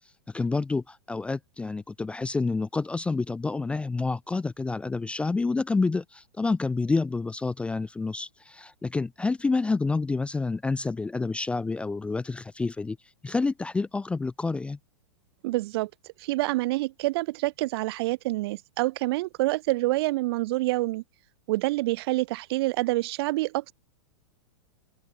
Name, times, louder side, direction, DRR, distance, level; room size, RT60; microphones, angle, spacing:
voice 1, 0.3-13.0 13.2-14.8, left 3 dB, 5° left, 0.4 m, -28 dB
voice 2, 15.4-15.9 16.2-21.0 21.5-23.7, right 19 dB, 55° right, 0.7 m, -27 dB
open air
hypercardioid pair, 130°, 15 cm